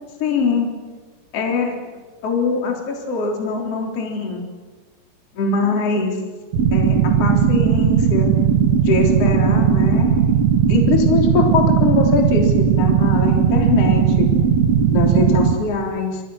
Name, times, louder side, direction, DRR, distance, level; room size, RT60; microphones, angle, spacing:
voice 1, 0.2-0.7 1.3-1.8 2.2-4.4 5.3-6.2 6.7-8.3 8.8-10.2 10.7-14.3 14.9-16.2, left 4 dB, 30° left, 1 dB, 4.1 m, -22 dB
sound 1, 6.5-15.5, right 7 dB, 70° right, 1.6 m, -17 dB
28.5 x 27.0 x 6.4 m, 1.4 s
omnidirectional pair, 5.9 m